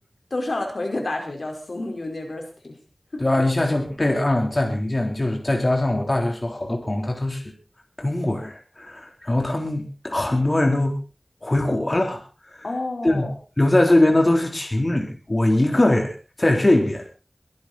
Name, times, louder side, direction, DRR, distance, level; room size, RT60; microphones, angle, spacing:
voice 1, 0.3-2.8 3.1-3.2 12.6-13.3, left 2 dB, 75° left, 2 dB, 4.9 m, -29 dB
voice 2, 3.2-7.4 8.0-11.0 11.4-12.2 12.5-12.7 13.0-13.2 13.6-17.0, left 1 dB, 40° left, 2 dB, 4.0 m, -21 dB
23.0 x 12.0 x 4.4 m, 0.35 s
wide cardioid pair, 55°, 0 cm